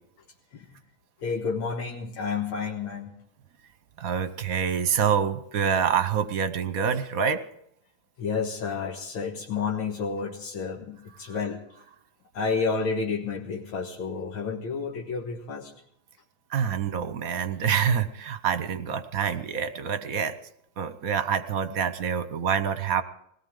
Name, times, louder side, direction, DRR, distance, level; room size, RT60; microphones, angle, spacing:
voice 1, 1.2-3.1 8.2-11.6 12.3-15.7, left 5 dB, 90° left, -1 dB, 2.3 m, -30 dB
voice 2, 4.0-7.4 16.5-20.4 20.8-23.0, right 7 dB, 55° right, 12 dB, 1.1 m, -26 dB
21.0 x 17.5 x 3.8 m, 0.72 s
omnidirectional pair, 2.2 m